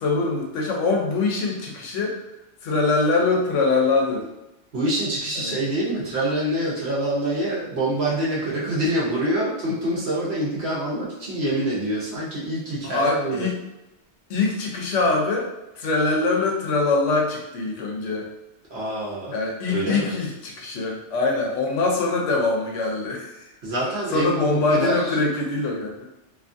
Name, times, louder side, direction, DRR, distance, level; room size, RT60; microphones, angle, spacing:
voice 1, 0.0-2.2 2.6-4.2 5.4-5.6 12.8-13.6 14.3-15.5 15.8-18.3 19.3-23.5 24.1-26.1, left 3 dB, 85° left, 0 dB, 1.0 m, -23 dB
voice 2, 4.7-13.5 18.7-19.3 19.7-20.1 23.6-25.1, right 1 dB, 65° right, -6 dB, 1.0 m, -26 dB
2.7 x 2.3 x 2.5 m, 0.94 s
omnidirectional pair, 1.2 m